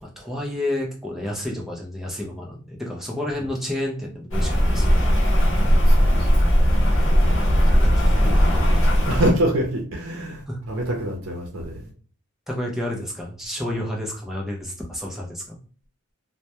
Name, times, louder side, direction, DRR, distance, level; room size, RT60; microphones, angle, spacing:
voice 1, 0.0-5.2 7.8-8.9 10.5-10.6 12.5-15.6, left 1 dB, ahead, 0.4 m, -31 dB
Rain, 4.3-9.3, equal, 60° left, 0.7 m, -18 dB
voice 2, 5.9-6.7 7.8-8.1 9.0-11.9 13.7-13.8, right 1 dB, 75° right, 0.6 m, -26 dB
2.2 x 2.1 x 2.8 m
head